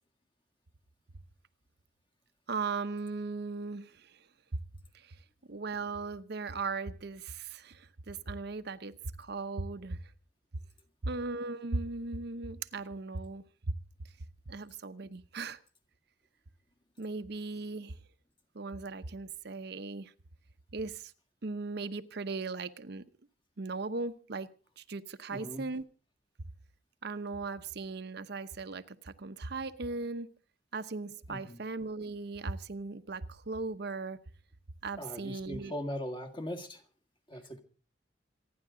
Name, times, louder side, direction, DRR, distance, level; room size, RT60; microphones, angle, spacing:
voice 1, 2.5-4.2 4.9-5.2 5.5-10.0 11.0-13.8 14.5-15.6 17.0-17.9 18.5-20.1 20.7-21.1 21.4-23.0 23.6-24.5 24.8-25.8 27.0-30.3 30.7-34.2 34.8-35.7, right 3 dB, 65° right, 0.8 m, -38 dB
voice 2, 25.3-25.7 31.3-31.6 35.0-36.8 37.3-37.6, equal, 25° left, 1.9 m, -39 dB
27.0 x 10.5 x 3.8 m
head